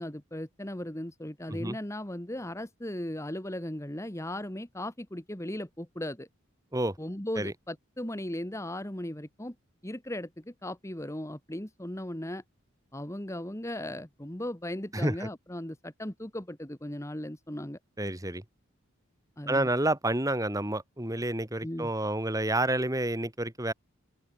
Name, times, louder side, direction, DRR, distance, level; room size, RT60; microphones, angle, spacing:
voice 1, 0.0-6.3 7.0-9.5 9.8-12.4 12.9-17.8 19.4-19.7 21.6-21.9, left 1 dB, 15° left, 1.6 m, -37 dB
voice 2, 14.9-15.3 18.0-18.4 19.5-23.7, right 1 dB, 15° right, 2.4 m, -29 dB
open air
head